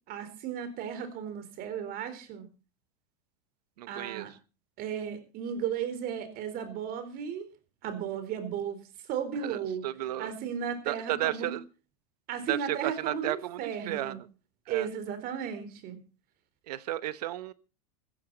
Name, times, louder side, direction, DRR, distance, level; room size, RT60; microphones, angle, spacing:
voice 1, 0.1-2.5 3.9-4.3 4.8-7.5 7.8-8.8 9.1-9.9 10.2-11.5 12.3-14.2 14.7-16.0, right 8 dB, 45° right, 11 dB, 4.0 m, -35 dB
voice 2, 3.8-4.3 9.4-10.3 10.8-11.6 12.5-14.3 14.7-14.9 16.7-17.5, right 14 dB, 80° right, 16 dB, 1.1 m, -33 dB
15.0 x 15.0 x 4.1 m, 0.33 s
hypercardioid pair, 110°, 20 cm